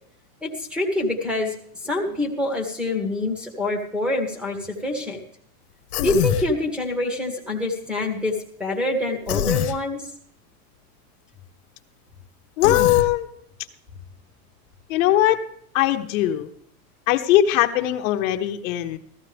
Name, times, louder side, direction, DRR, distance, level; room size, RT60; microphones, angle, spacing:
voice 1, 0.4-5.2 6.0-10.1, left 2 dB, ahead, 3 dB, 1.5 m, -26 dB
Human voice, 5.9-6.5 9.3-9.8 12.6-13.1, left 11 dB, 85° left, 1.1 m, -24 dB
voice 2, 12.6-13.3 14.9-15.4 15.7-16.5 17.1-19.0, left 13 dB, 65° left, 5 dB, 1.1 m, -20 dB
15.0 x 14.0 x 3.4 m, 0.67 s
supercardioid pair, 170°, 43 cm